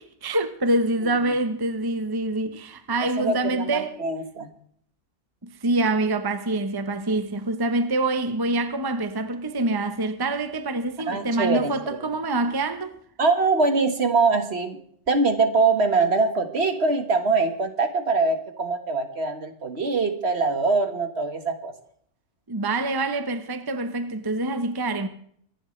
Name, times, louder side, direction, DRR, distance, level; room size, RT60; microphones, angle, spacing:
voice 1, 0.0-3.9 5.4-13.0 22.5-25.1, right 2 dB, 20° right, 0.9 m, -26 dB
voice 2, 3.2-4.5 11.1-12.0 13.2-14.8 15.1-21.7, right 3 dB, 55° right, 1.8 m, -23 dB
24.5 x 11.5 x 3.2 m
omnidirectional pair, 1.3 m